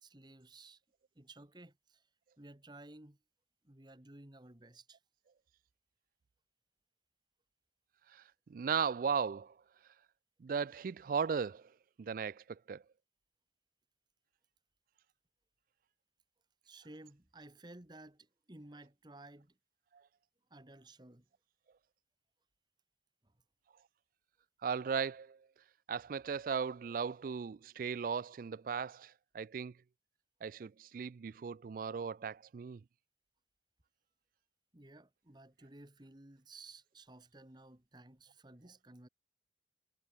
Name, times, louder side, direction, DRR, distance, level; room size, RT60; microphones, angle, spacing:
voice 1, 0.0-0.8 1.1-2.1 2.4-3.2 3.6-5.0 16.6-19.6 20.5-21.2 23.2-23.3 34.7-39.1, right 2 dB, 25° right, 1.5 m, -55 dB
voice 2, 8.5-9.5 10.4-11.7 12.0-12.8 24.6-25.4 25.9-29.7 30.4-32.8, right 6 dB, 50° right, 0.3 m, -37 dB
head